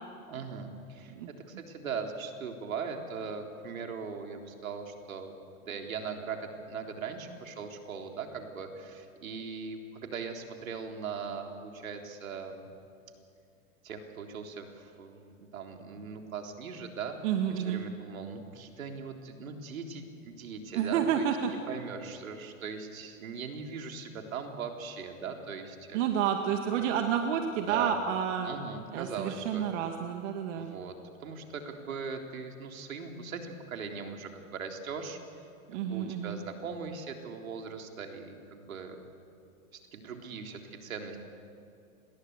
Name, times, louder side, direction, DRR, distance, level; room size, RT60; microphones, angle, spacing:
voice 1, 0.3-1.1 1.5-5.3 5.6-12.7 13.8-17.2 17.5-21.3 21.7-26.0 26.7-26.8 27.7-28.0 28.4-29.7 30.5-31.0 31.2-35.2 35.7-39.0 39.7-41.2, right 5 dB, 80° right, 3 dB, 3.8 m, -40 dB
voice 2, 17.2-17.8 20.7-21.5 25.9-28.5 28.9-30.8 35.7-36.4, right 8 dB, 60° right, 4 dB, 2.1 m, -30 dB
29.5 x 21.5 x 8.2 m, 2.4 s
hypercardioid pair, 105°, 41 cm